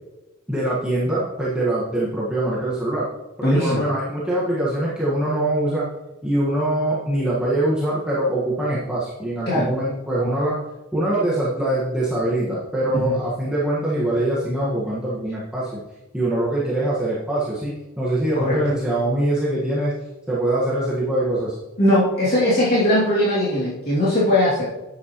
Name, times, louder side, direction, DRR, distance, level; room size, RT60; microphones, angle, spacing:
voice 1, 0.5-3.1 3.4-5.8 6.2-10.6 10.9-15.8 16.1-19.9 20.3-21.6, right 1 dB, 5° right, -9 dB, 1.5 m, -23 dB
voice 2, 3.4-3.8 9.5-9.7 12.9-13.2 18.3-18.6 21.8-24.6, left 1 dB, 45° left, -9 dB, 2.5 m, -19 dB
10.5 x 8.5 x 3.0 m, 1.1 s
head